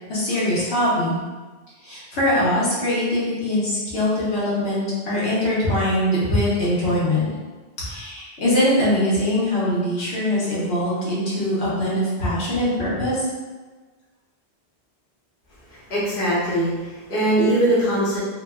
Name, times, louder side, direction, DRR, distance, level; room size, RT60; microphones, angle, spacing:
voice 1, 0.1-1.2 1.8-7.3 7.8-13.2, left 1 dB, 80° left, -9 dB, 1.2 m, -22 dB
voice 2, 15.7-18.2, right 1 dB, 60° left, -9 dB, 1.0 m, -21 dB
3.2 x 2.2 x 2.2 m, 1.3 s
omnidirectional pair, 1.1 m